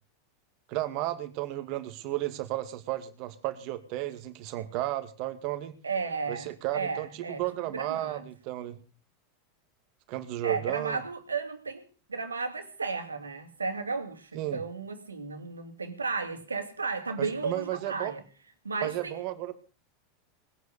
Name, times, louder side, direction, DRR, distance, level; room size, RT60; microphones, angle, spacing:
voice 1, 0.7-5.7 6.3-8.8 10.1-11.0 14.3-14.6 17.2-18.1 18.8-19.5, right 15 dB, 50° right, 2.4 m, -33 dB
voice 2, 5.8-7.4 7.7-8.2 10.4-18.2 18.6-19.2, right 4 dB, 85° right, 2.8 m, -34 dB
20.5 x 9.4 x 6.7 m
figure-of-eight pair, 85°, 0 cm